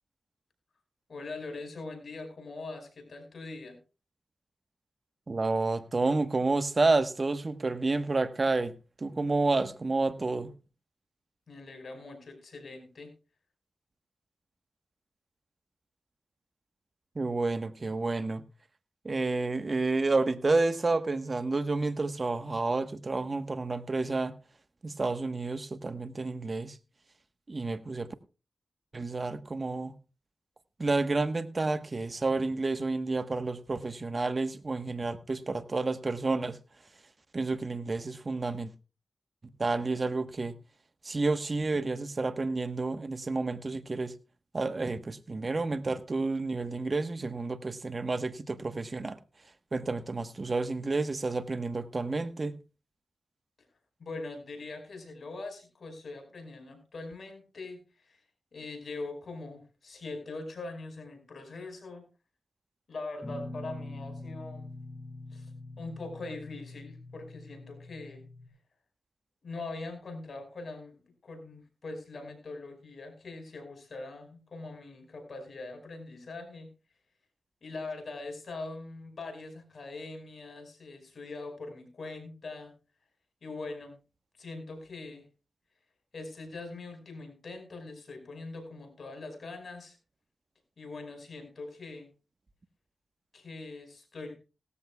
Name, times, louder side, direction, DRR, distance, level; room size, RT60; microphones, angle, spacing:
voice 1, 1.1-3.8 11.5-13.1 54.0-58.2 58.5-62.0 62.9-64.7 65.3-65.5 65.8-68.2 69.4-76.7 77.6-82.7 83.4-84.0 84.4-85.2 86.1-90.0 90.8-92.1 93.3-94.3, left 3 dB, 70° left, 5.1 m, -42 dB
voice 2, 5.3-10.5 17.1-18.4 19.0-24.3 24.8-26.8 27.5-28.1 28.9-29.9 30.8-36.6 37.3-38.7 39.6-40.6 41.0-44.1 44.5-49.2 49.7-52.5, right 3 dB, 45° right, 1.2 m, -30 dB
Guitar, 63.2-68.5, left 2 dB, 25° left, 6.6 m, -44 dB
18.0 x 14.0 x 2.3 m
cardioid pair, 40°, 0 cm